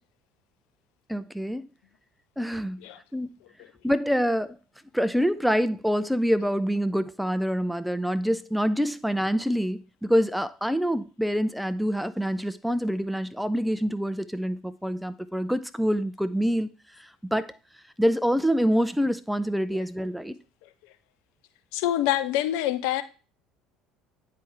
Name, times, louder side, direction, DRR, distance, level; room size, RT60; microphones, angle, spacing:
voice 1, 1.1-1.7 2.4-2.8 3.1-3.3 3.8-4.6 4.9-16.7 17.0-17.5 18.0-20.4, equal, ahead, 0.5 m, -26 dB
voice 2, 21.7-23.0, left 12 dB, 65° left, 0.6 m, -25 dB
9.3 x 4.8 x 3.2 m
figure-of-eight pair, 60°, 0 cm